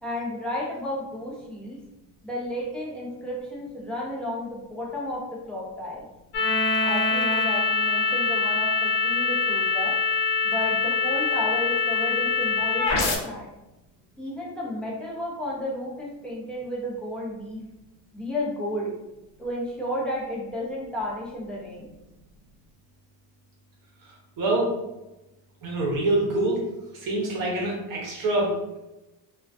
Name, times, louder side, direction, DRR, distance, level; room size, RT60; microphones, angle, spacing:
voice 1, 0.0-1.8 2.2-6.1 6.8-9.9 10.4-13.5 14.2-17.6 18.1-18.9 19.4-21.9, left 1 dB, ahead, -5 dB, 0.6 m, -32 dB
sound 1, 6.3-13.2, left 4 dB, 65° left, 0.6 m, -24 dB
voice 2, 24.4-24.7 25.6-26.6 26.9-28.8, right 2 dB, 55° right, -3 dB, 0.8 m, -25 dB
2.3 x 2.3 x 2.3 m, 0.99 s
cardioid pair, 115°, 41 cm